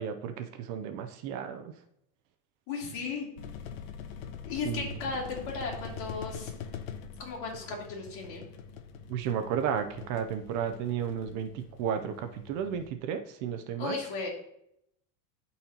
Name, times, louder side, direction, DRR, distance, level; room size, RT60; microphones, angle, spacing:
voice 1, 0.0-1.7 4.6-4.9 9.1-14.0, right 8 dB, 45° right, 7 dB, 0.7 m, -33 dB
voice 2, 2.7-3.3 4.5-6.5 7.2-8.4 13.8-14.3, left 4 dB, 50° left, -2 dB, 2.7 m, -35 dB
sound 1, 3.4-12.9, left 6 dB, 85° left, 0.9 m, -44 dB
12.5 x 4.3 x 2.9 m, 0.76 s
supercardioid pair, 150°, 40 cm